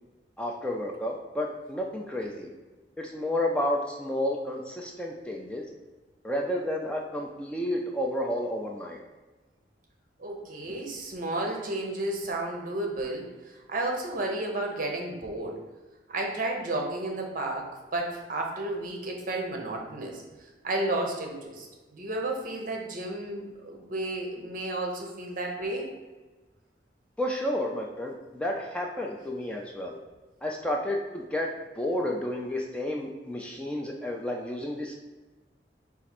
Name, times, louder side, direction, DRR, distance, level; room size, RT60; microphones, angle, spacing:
voice 1, 0.4-2.5 3.0-5.7 6.2-9.0 27.2-30.0 30.4-34.9, left 1 dB, 5° left, 0 dB, 0.3 m, -31 dB
voice 2, 10.2-13.3 13.7-15.6 16.1-20.2 20.6-21.7 21.9-25.9, right 2 dB, 50° right, 1 dB, 0.7 m, -32 dB
4.2 x 2.5 x 4.2 m, 1.2 s
head